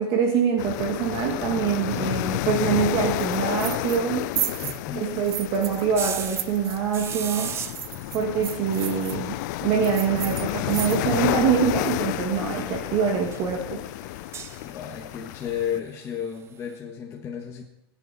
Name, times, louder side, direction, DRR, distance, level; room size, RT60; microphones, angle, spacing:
voice 1, 0.0-4.3 4.9-7.5 8.1-13.8, right 7 dB, 35° right, 1 dB, 2.0 m, -25 dB
sound 1, 0.6-15.8, left 17 dB, 45° left, 0.4 m, -31 dB
sound 2, 3.2-4.1 4.3-5.9 6.1-9.2 9.8-11.3, right 11 dB, 70° right, 1.0 m, -34 dB
voice 2, 4.6-5.2 14.6-17.6, left 8 dB, 20° left, -2 dB, 1.5 m, -33 dB
sound 3, 5.9-6.5 6.9-8.2 8.6-8.7 8.9-9.0 9.2-9.3 11.1-11.2 11.9-12.0 12.7-12.9 13.3-13.5 14.0-14.9 16.6-16.7, right 7 dB, 20° right, 0.8 m, -33 dB
22.5 x 10.0 x 4.2 m, 0.83 s
supercardioid pair, 145°, 14 cm